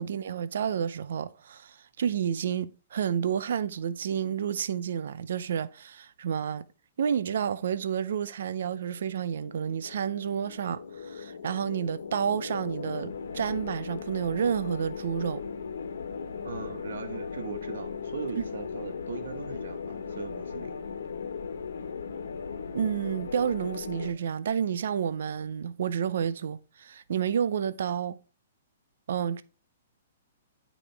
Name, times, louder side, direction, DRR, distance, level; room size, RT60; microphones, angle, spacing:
voice 1, 0.0-6.6 7.0-15.4 22.7-28.2 29.1-29.4, right 8 dB, 55° right, 0.5 m, -30 dB
sound 1, 8.6-24.1, left 6 dB, 90° left, 1.3 m, -38 dB
voice 2, 16.4-20.7, right 5 dB, 70° right, 1.3 m, -39 dB
10.5 x 5.0 x 3.4 m
hypercardioid pair, 175°, 0 cm